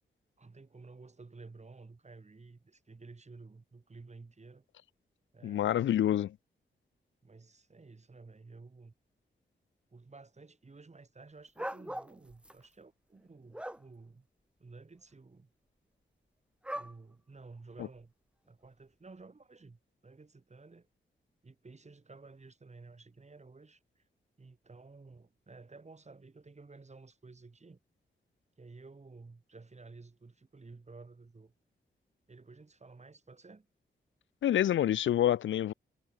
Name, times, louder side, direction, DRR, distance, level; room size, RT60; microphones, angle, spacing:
voice 1, 0.4-4.7 5.3-6.2 7.2-8.9 9.9-14.3 14.6-15.5 16.7-18.1 18.5-20.9 21.4-24.1 24.4-27.8 28.6-31.5 32.3-33.7, right 3 dB, 35° right, 5.9 m, -53 dB
voice 2, 5.4-6.3 34.4-35.7, left 11 dB, 85° left, 0.4 m, -27 dB
sound 1, 11.6-12.5 13.2-13.8 16.6-16.9 17.8-17.9, right 1 dB, 5° right, 1.9 m, -40 dB
cardioid pair, 80°, 19 cm